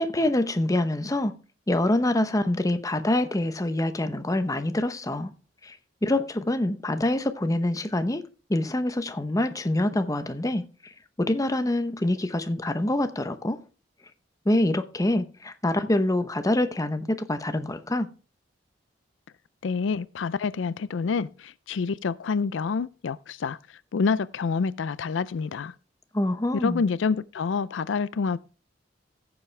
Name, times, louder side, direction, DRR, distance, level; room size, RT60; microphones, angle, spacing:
voice 1, 0.0-1.3 1.7-5.3 5.6-5.8 6.0-8.2 8.5-10.6 11.2-13.6 14.5-18.1 26.1-26.8, left 1 dB, 20° left, 0.8 m, -25 dB
voice 2, 19.6-23.6 23.9-25.7 26.6-28.4, left 5 dB, 80° left, 0.4 m, -27 dB
15.0 x 7.2 x 3.3 m
head